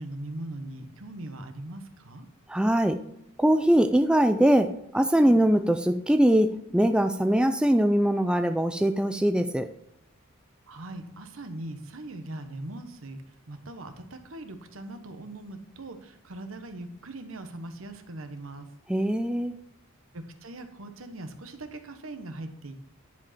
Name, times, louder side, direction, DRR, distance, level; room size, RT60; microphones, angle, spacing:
voice 1, 0.0-2.3 10.7-13.2 13.5-18.7 20.1-22.8, right 2 dB, 70° right, 7 dB, 1.1 m, -40 dB
voice 2, 2.5-3.0 3.4-9.7 18.9-19.6, right 1 dB, 5° right, 7 dB, 0.3 m, -22 dB
10.5 x 5.1 x 4.2 m, 0.78 s
head